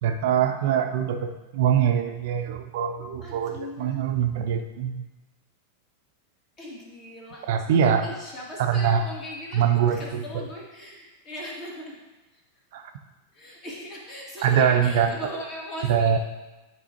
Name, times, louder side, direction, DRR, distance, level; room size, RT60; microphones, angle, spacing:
voice 1, 0.0-5.1 7.5-8.0 8.7-9.0 9.5-10.0 12.7-12.9 14.4-15.2 15.9-16.2, right 8 dB, 55° right, 5 dB, 0.5 m, -23 dB
voice 2, 3.2-4.0 6.6-12.0 12.3-12.4 13.3-16.2, left 1 dB, 35° left, -3 dB, 2.0 m, -39 dB
10.5 x 3.8 x 2.9 m, 1.1 s
figure-of-eight pair, 90°, 0 cm